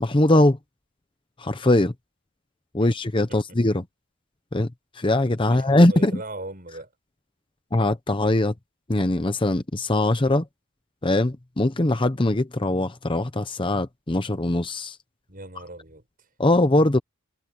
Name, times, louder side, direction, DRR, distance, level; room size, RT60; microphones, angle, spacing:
voice 1, 0.0-0.6 1.4-1.9 2.7-3.8 4.5-4.7 5.0-6.1 7.7-8.5 8.9-10.4 11.0-15.0 16.4-17.0, left 1 dB, 25° left, 0.8 m, -21 dB
voice 2, 5.4-6.9 15.3-16.3, right 2 dB, 40° right, 7.9 m, -39 dB
head